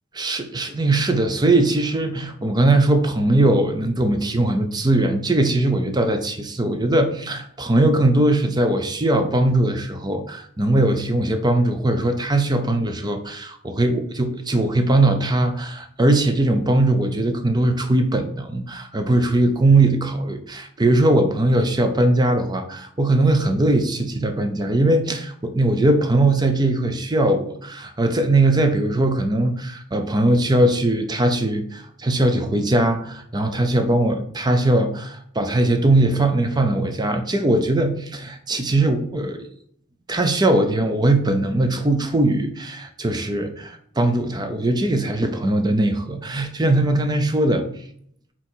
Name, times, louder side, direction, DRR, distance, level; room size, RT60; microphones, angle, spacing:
voice 1, 0.1-39.5 40.1-47.6, right 2 dB, 20° right, 7 dB, 0.6 m, -20 dB
8.1 x 3.0 x 4.5 m, 0.65 s
head